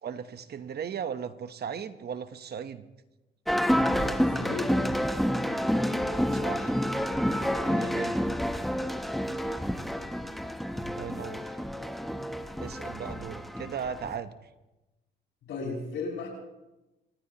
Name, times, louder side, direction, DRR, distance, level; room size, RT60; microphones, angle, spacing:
voice 1, 0.0-2.8 6.3-6.8 7.6-8.2 10.8-11.6 12.6-14.3, right 7 dB, 55° right, 11 dB, 1.0 m, -37 dB
sound 1, 3.5-14.2, equal, ahead, 1.0 m, -29 dB
voice 2, 3.9-4.8 15.5-16.3, left 4 dB, 75° left, -2 dB, 7.0 m, -35 dB
27.5 x 15.5 x 3.0 m, 1.0 s
cardioid pair, 90°, 20 cm